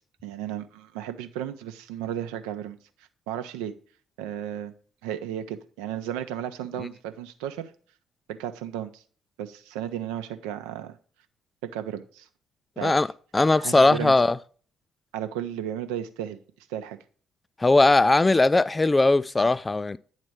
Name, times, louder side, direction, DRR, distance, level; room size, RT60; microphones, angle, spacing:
voice 1, 0.2-2.8 3.3-3.7 4.2-4.7 5.0-7.7 8.3-9.0 9.4-11.0 11.6-12.3 12.8-13.0 13.6-14.1 15.1-16.4 16.7-17.0, right 10 dB, 70° right, 0.7 m, -34 dB
voice 2, 13.3-14.4 17.6-20.0, left 2 dB, 20° left, 0.4 m, -19 dB
9.6 x 4.1 x 4.7 m
figure-of-eight pair, 45°, 0 cm